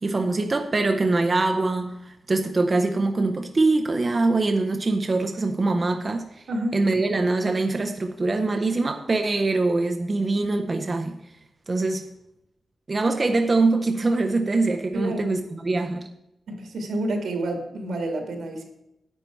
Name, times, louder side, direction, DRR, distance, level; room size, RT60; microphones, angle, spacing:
voice 1, 0.0-6.4 6.7-11.2 11.7-12.0 12.9-16.1, right 3 dB, 30° right, 0.6 m, -23 dB
voice 2, 6.5-6.8 14.9-15.2 16.5-18.6, right 1 dB, 80° right, 2.0 m, -29 dB
9.9 x 8.6 x 4.5 m
wide cardioid pair, 150°, 0 cm